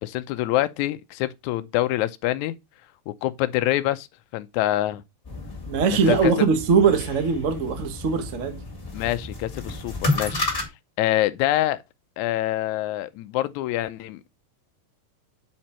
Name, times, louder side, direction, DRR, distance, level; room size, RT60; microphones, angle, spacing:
voice 1, 0.0-2.6 3.1-4.1 4.3-5.0 6.1-6.3 8.9-10.4 11.0-11.8 12.2-14.3, left 15 dB, 75° left, 1.9 m, -25 dB
sound 1, 5.2-10.7, left 2 dB, 20° left, 1.7 m, -31 dB
voice 2, 5.7-8.6, right 5 dB, 85° right, 0.7 m, -21 dB
7.5 x 4.4 x 4.3 m
omnidirectional pair, 3.6 m